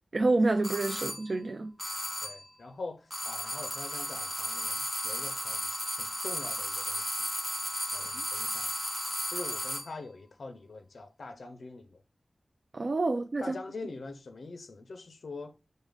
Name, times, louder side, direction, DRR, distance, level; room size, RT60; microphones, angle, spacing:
voice 1, 0.1-1.7 12.7-13.6, right 2 dB, 55° right, 0.3 m, -28 dB
sound 1, 0.6-1.3 1.8-2.5 3.1-10.0, equal, ahead, 1.2 m, -34 dB
voice 2, 2.2-5.7 6.0-7.3 7.9-8.7 9.3-12.0 13.4-15.5, left 3 dB, 85° left, 0.4 m, -44 dB
4.9 x 2.1 x 4.8 m
wide cardioid pair, 90°, 0 cm